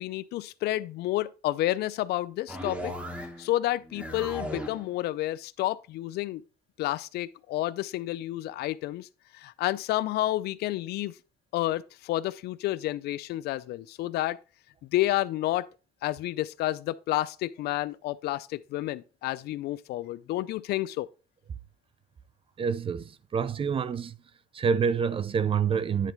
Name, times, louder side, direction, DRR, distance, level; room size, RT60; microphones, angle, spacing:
voice 1, 0.0-2.9 3.4-6.4 6.8-9.1 9.3-11.1 11.5-14.4 14.8-15.7 16.0-21.1, left 15 dB, 75° left, 0.5 m, -30 dB
sound 1, 2.5-3.5 3.8-4.9, equal, 10° right, 2.1 m, -37 dB
voice 2, 22.6-24.2 24.5-26.1, right 6 dB, 30° right, 0.6 m, -27 dB
10.0 x 4.1 x 4.6 m
cardioid pair, 110°, 17 cm